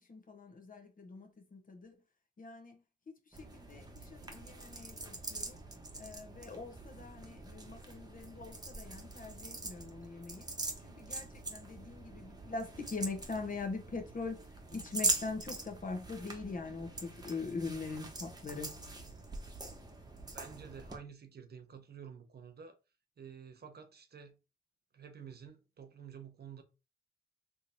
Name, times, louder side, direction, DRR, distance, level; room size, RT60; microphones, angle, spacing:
voice 1, 0.1-1.9 2.4-2.8 3.1-5.6 6.0-10.5 10.8-14.4 14.7-18.7, left 3 dB, 40° left, 1.1 m, -42 dB
sound 1, 3.3-21.0, right 2 dB, 20° right, 1.1 m, -42 dB
voice 2, 20.3-22.8 23.2-24.4 24.9-26.6, right 7 dB, 50° right, 0.8 m, -50 dB
3.5 x 3.0 x 2.7 m
cardioid pair, 60°, 21 cm